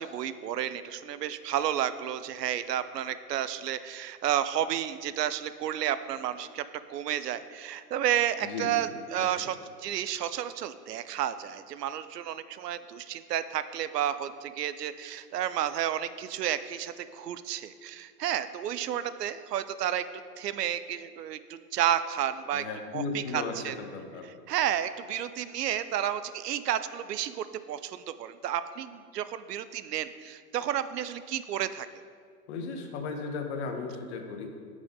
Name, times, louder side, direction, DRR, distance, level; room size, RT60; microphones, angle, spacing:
voice 1, 0.0-20.0 20.4-22.7 22.9-23.0 23.3-23.7 24.5-31.9, right 10 dB, 75° right, 13 dB, 0.6 m, -31 dB
voice 2, 8.4-9.3 22.5-24.3 32.5-34.5, left 4 dB, 40° left, 4 dB, 1.1 m, -36 dB
8.9 x 5.1 x 3.7 m, 2.1 s
hypercardioid pair, 120°, 49 cm